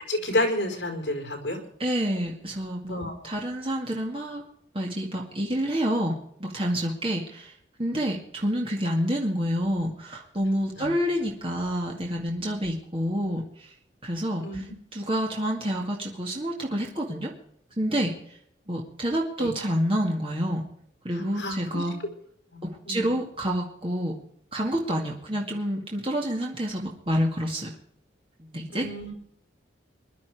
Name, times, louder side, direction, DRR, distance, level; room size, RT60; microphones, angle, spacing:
voice 1, 0.1-1.6 2.9-3.1 10.8-10.9 14.4-14.6 19.4-19.5 21.1-21.8 22.5-23.1 28.7-29.1, left 1 dB, 65° left, 4 dB, 4.4 m, -30 dB
voice 2, 1.8-3.0 3.2-4.4 4.7-7.5 7.8-13.7 14.0-14.4 14.9-17.3 17.8-18.1 18.7-20.6 21.0-21.9 22.6-24.1 24.5-27.7 28.4-28.9, equal, 30° right, -1 dB, 2.1 m, -28 dB
20.5 x 11.5 x 4.9 m, 0.68 s
head